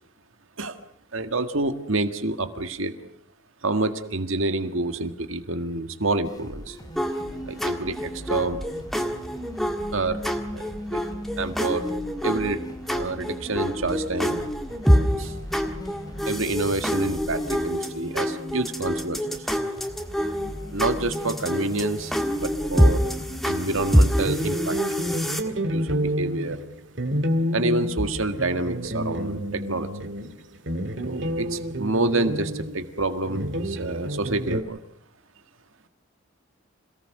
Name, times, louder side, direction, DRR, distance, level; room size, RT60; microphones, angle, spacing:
voice 1, 1.1-2.9 3.6-6.8 7.5-8.6 9.9-10.2 10.5-11.0 11.4-11.9 12.2-12.6 12.9-14.4 14.9-15.4 16.3-19.5 20.7-23.1 23.4-25.2 25.4-26.6 27.5-29.9 31.0-34.8, right 2 dB, 75° right, 8 dB, 1.8 m, -28 dB
sound 1, 6.2-24.3, equal, 20° left, 3.0 m, -41 dB
sound 2, 7.0-25.4, equal, ahead, 1.6 m, -26 dB
sound 3, 24.2-34.6, equal, 55° right, 2.3 m, -29 dB
27.5 x 18.0 x 6.6 m, 0.70 s
head